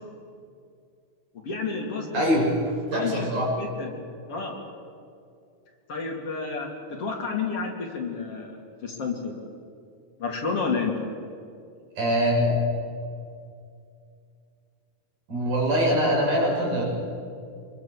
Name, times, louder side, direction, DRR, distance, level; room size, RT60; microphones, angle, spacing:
voice 1, 1.4-2.2 2.9-3.9 4.3-4.5 5.9-9.3 10.2-10.9, left 4 dB, 40° left, 0 dB, 3.4 m, -30 dB
voice 2, 2.1-2.5 2.9-3.5 12.0-12.6 15.3-16.8, equal, 60° right, -3 dB, 8.1 m, -23 dB
26.0 x 23.0 x 7.4 m, 2.4 s
omnidirectional pair, 4.6 m